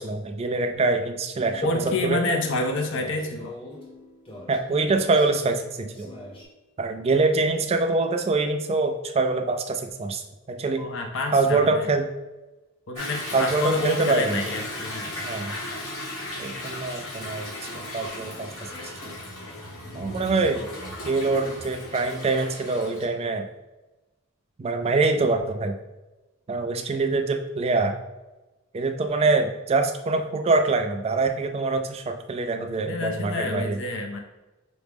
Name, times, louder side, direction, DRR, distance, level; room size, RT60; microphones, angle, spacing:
voice 1, 0.0-2.3 4.5-6.1 6.8-10.2 10.5-10.8 11.3-12.1 13.3-14.4 15.2-15.5 16.4-18.5 19.9-20.7 21.0-23.5 24.6-25.8 26.5-28.0 28.7-33.8, right 3 dB, 30° right, 6 dB, 0.3 m, -24 dB
sound 1, 1.5-6.4, left 1 dB, 25° left, 0.8 m, -43 dB
voice 2, 1.6-3.6 10.8-12.0 12.9-15.2 32.8-34.2, left 2 dB, 60° left, 4 dB, 0.5 m, -28 dB
Toilet flush / Drip / Trickle dribble, 13.0-23.1, left 1 dB, 80° left, 1.1 m, -36 dB
5.9 x 2.0 x 3.4 m, 1.1 s
head